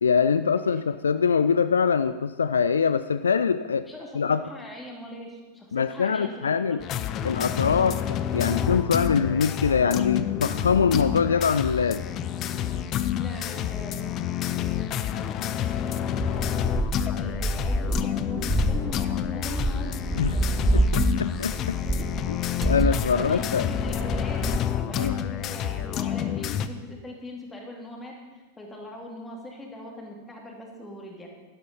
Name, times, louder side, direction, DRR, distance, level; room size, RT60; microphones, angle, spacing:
voice 1, 0.0-3.9 4.1-4.4 5.7-6.8 7.2-12.0 20.2-20.4 20.7-21.8 22.3-22.4 22.6-23.7 25.0-25.2, left 6 dB, 70° left, 13 dB, 0.4 m, -23 dB
voice 2, 3.9-6.8 13.1-15.0 15.3-16.4 17.0-19.9 20.3-31.3, left 1 dB, 15° left, 0 dB, 2.8 m, -41 dB
sound 1, 6.8-26.7, left 10 dB, 35° left, 0.6 m, -29 dB
sound 2, 16.2-24.6, right 2 dB, 5° right, 0.4 m, -27 dB
12.0 x 11.5 x 5.4 m, 1.2 s
figure-of-eight pair, 90°, 0 cm